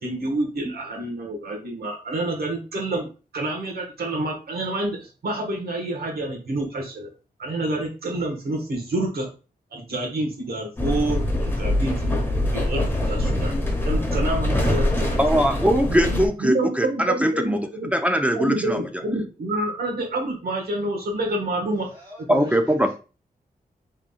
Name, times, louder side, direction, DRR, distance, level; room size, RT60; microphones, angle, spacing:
voice 1, 0.0-3.1 3.3-7.1 7.4-9.3 9.7-12.2 12.5-13.5 13.8-15.2 15.9-17.9 18.3-21.9 22.3-22.5, right 2 dB, 80° right, 1.5 m, -28 dB
sound 1, 10.8-16.3, left 1 dB, 15° left, 1.1 m, -23 dB
voice 2, 15.2-18.8 22.3-22.9, equal, 10° right, 0.4 m, -21 dB
voice 3, 21.8-22.6 22.8-22.9, equal, 30° right, 1.4 m, -46 dB
5.2 x 3.7 x 2.4 m
wide cardioid pair, 120°, 16 cm